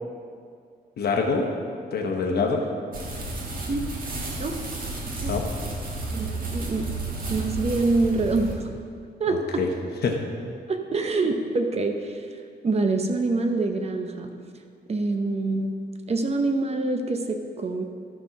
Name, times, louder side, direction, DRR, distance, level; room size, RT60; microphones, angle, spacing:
voice 1, 1.0-1.5 1.9-2.6 5.3-5.5 9.3-9.7 10.0-10.2, left 4 dB, 60° left, 1 dB, 1.0 m, -25 dB
sound 1, 2.9-8.5, right 2 dB, 50° right, 1.5 m, -32 dB
voice 2, 6.1-6.8 7.3-8.6 9.2-9.6 10.7-12.3 12.6-14.3 14.9-15.7 16.1-17.8, right 3 dB, 35° right, 5 dB, 0.8 m, -25 dB
12.5 x 4.5 x 5.9 m, 2.3 s
wide cardioid pair, 135°, 18 cm